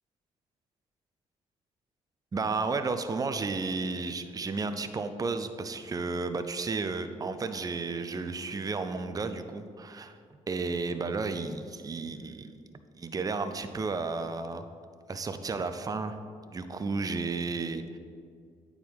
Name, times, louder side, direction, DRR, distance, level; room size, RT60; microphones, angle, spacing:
voice 1, 2.3-10.2 10.5-12.6 13.0-14.6 15.1-16.2 16.5-18.0, right 4 dB, 25° right, 9 dB, 0.5 m, -33 dB
9.0 x 4.8 x 3.5 m, 2.1 s
supercardioid pair, 55°, 14 cm